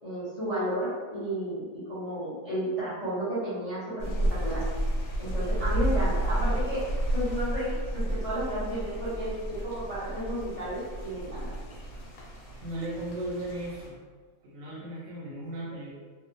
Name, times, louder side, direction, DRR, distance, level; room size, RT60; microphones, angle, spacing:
voice 1, 0.0-4.1 4.4-4.6 5.2-6.8 7.1-11.5, right 1 dB, 45° left, -12 dB, 0.4 m, -32 dB
sound 1, 4.0-13.9, right 1 dB, 85° left, 1.3 m, -31 dB
voice 2, 12.6-14.0 14.4-15.9, right 1 dB, 70° right, -5 dB, 0.9 m, -36 dB
2.7 x 2.0 x 2.5 m, 1.5 s
omnidirectional pair, 1.7 m